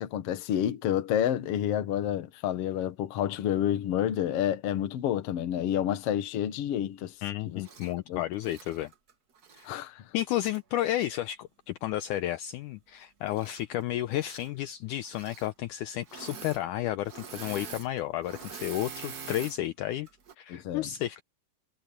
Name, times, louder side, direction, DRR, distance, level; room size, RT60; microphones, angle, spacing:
voice 1, 0.0-7.1 7.4-7.6 8.1-8.2 9.6-10.0 20.5-20.9, left 10 dB, 60° left, 1.7 m, -29 dB
voice 2, 7.2-8.9 9.5-9.7 10.1-20.1 20.4-21.2, left 13 dB, 80° left, 1.9 m, -32 dB
Engine / Mechanisms, 7.6-7.9 8.4-9.7 10.5-10.6 13.3-13.8 14.1-14.5 15.0-15.5 16.0-16.6 16.9-19.6 20.1-20.3, right 6 dB, 80° right, 0.8 m, -44 dB
omnidirectional pair, 4.2 m